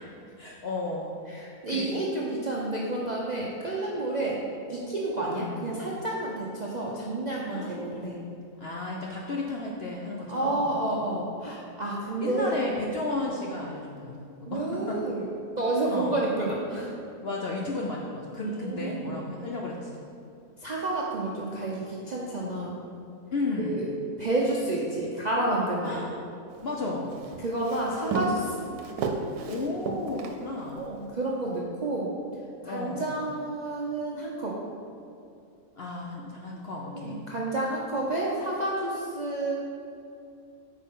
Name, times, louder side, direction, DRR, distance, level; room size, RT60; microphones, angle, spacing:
voice 1, 0.4-1.2 1.7-2.1 5.4-5.8 7.4-7.9 8.6-10.8 12.2-15.0 15.9-16.3 17.2-20.0 23.3-23.9 25.8-26.1 26.6-27.2 29.5-30.9 32.6-33.2 35.7-37.2, left 2 dB, 60° left, -1 dB, 0.6 m, -33 dB
voice 2, 1.3-4.4 4.7-8.1 10.3-12.5 14.5-15.2 15.6-16.9 18.4-19.1 20.6-22.8 23.6-23.8 24.2-26.0 27.4-28.7 30.8-32.1 32.6-34.5 37.0-39.5, right 2 dB, 50° right, -4 dB, 0.5 m, -30 dB
Walk footsteps, 26.5-30.9, right 4 dB, 80° right, 1.2 m, -34 dB
8.3 x 4.6 x 3.6 m, 2.6 s
omnidirectional pair, 1.6 m